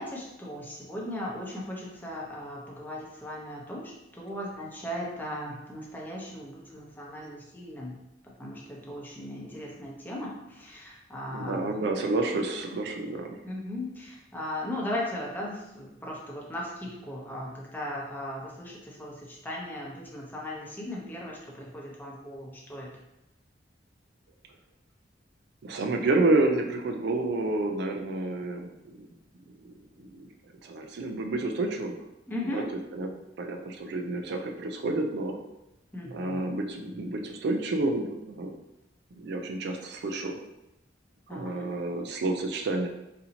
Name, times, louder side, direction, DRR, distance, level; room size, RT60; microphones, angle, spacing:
voice 1, 0.0-8.0 8.4-11.7 13.4-22.9 32.3-32.6 35.9-36.6 41.3-41.8, left 1 dB, 10° left, -3 dB, 0.8 m, -37 dB
voice 2, 11.3-13.4 25.6-29.0 29.6-29.7 30.0-30.3 30.6-32.0 32.5-32.6 32.9-35.4 36.1-38.5 39.1-40.4 41.3-42.9, right 2 dB, 65° right, 4 dB, 0.4 m, -29 dB
4.1 x 2.7 x 2.8 m, 0.90 s
head